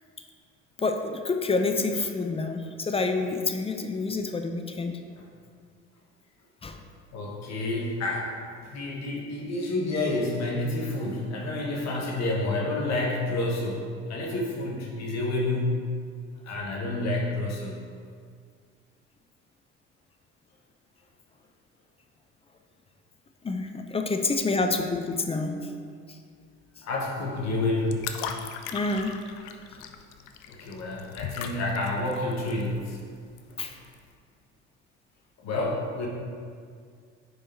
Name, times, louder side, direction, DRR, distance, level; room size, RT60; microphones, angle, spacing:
voice 1, 0.8-4.9 6.6-6.8 23.4-26.0 28.7-29.2 33.6-33.8, left 3 dB, 15° left, 5 dB, 0.5 m, -28 dB
voice 2, 7.1-8.3 8.6-15.8 16.4-17.8 26.8-28.1 30.5-33.0 35.4-36.1, left 2 dB, 50° left, -2 dB, 1.2 m, -29 dB
sound 1, 27.4-34.1, left 7 dB, 70° left, 0.6 m, -40 dB
4.9 x 4.7 x 4.3 m, 2.1 s
hypercardioid pair, 65°, 34 cm